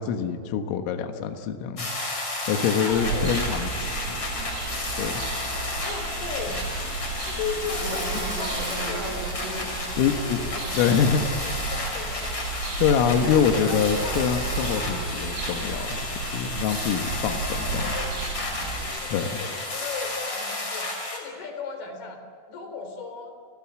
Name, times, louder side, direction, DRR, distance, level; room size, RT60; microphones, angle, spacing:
voice 1, 0.0-1.9 2.5-4.2 5.0-5.2 10.0-10.4 10.7-11.3 12.8-16.0 16.3-17.9 19.1-19.4, left 7 dB, 80° left, 6 dB, 4.1 m, -25 dB
sound 1, 1.8-21.2, left 2 dB, 25° left, 5.8 m, -32 dB
voice 2, 2.6-3.3 5.8-6.6 7.3-9.3 10.1-12.3 13.2-14.3 17.6-18.2 18.9-22.2 22.5-23.3, left 5 dB, 50° left, 5 dB, 5.6 m, -36 dB
Bird vocalization bird call bird song, 2.9-18.9, right 4 dB, 75° right, 6.0 m, -33 dB
29.5 x 20.5 x 7.6 m, 2.4 s
omnidirectional pair, 5.9 m